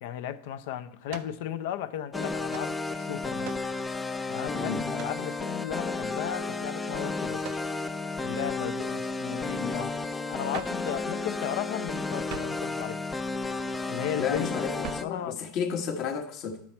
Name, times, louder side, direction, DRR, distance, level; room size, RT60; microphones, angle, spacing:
voice 1, 0.0-3.5 4.3-7.6 8.2-9.9 10.3-13.0 13.9-15.4, left 10 dB, 65° left, 0.6 m, -35 dB
sound 1, 1.1-1.4 2.5-2.7 3.4-3.7 5.0-5.2 7.4-7.7 10.5-10.9 12.3-12.7 14.8-15.2, right 13 dB, 55° right, 0.4 m, -42 dB
sound 2, 2.1-15.0, left 3 dB, 10° left, 0.4 m, -32 dB
voice 2, 4.5-4.9 14.2-16.6, left 6 dB, 40° left, 1.2 m, -32 dB
10.5 x 7.4 x 4.4 m
supercardioid pair, 160°, 0 cm